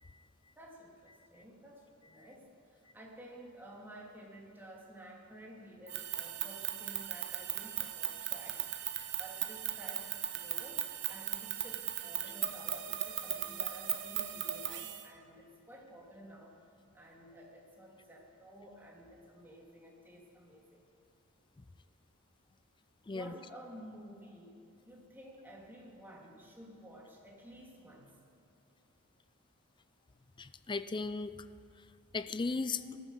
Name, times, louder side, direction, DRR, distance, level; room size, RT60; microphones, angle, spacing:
voice 1, 0.6-8.7 8.9-16.5 16.9-20.8 23.1-24.5 24.8-28.2 32.7-33.0, equal, 10° right, -2 dB, 2.5 m, -52 dB
sound 1, 5.9-15.1, right 12 dB, 55° right, 0.9 m, -38 dB
voice 2, 23.1-23.4 30.4-31.5 31.8-31.9 32.1-32.8, left 3 dB, 20° left, 13 dB, 0.4 m, -37 dB
19.0 x 13.5 x 5.5 m, 2.8 s
head